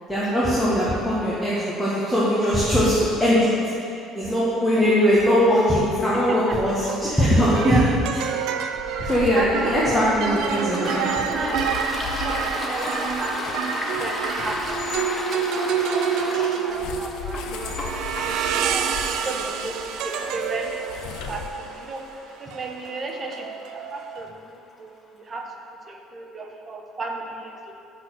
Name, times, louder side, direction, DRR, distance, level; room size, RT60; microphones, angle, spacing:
voice 1, 0.1-3.5 3.8-3.9 4.1-7.8 9.0-11.1, equal, 10° left, -9 dB, 1.6 m, -20 dB
voice 2, 6.1-8.0 9.0-10.1 10.4-11.8 12.1-14.6 14.9-15.8 16.1-18.2 18.6-19.7 20.0-21.0 21.3-23.5 23.7-25.6 25.9-27.7, right 3 dB, 35° right, 1 dB, 1.0 m, -34 dB
sound 1, 6.4-6.6 7.5-24.3, right 7 dB, 70° right, 0.4 m, -28 dB
sound 2, 8.7-15.1 16.7-21.9, left 7 dB, 75° left, 0.5 m, -38 dB
Toilet flush, 10.6-24.0, left 2 dB, 30° left, 0.9 m, -34 dB
6.1 x 4.2 x 6.4 m, 2.7 s
hypercardioid pair, 70°, 0 cm